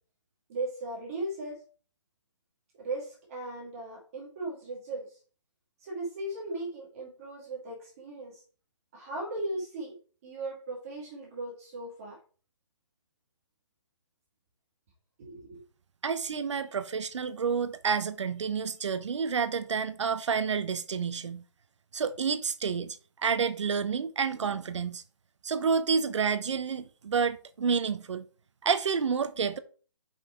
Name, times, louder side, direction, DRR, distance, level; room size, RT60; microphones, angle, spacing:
voice 1, 0.5-1.6 2.8-5.2 5.8-8.4 8.9-10.0 10.2-12.2 15.2-15.6, right 2 dB, 30° right, 2.2 m, -37 dB
voice 2, 16.0-21.4 21.9-25.0 25.4-28.3 28.6-29.6, right 6 dB, 70° right, 0.7 m, -29 dB
5.7 x 5.5 x 4.3 m
hypercardioid pair, 170°, 16 cm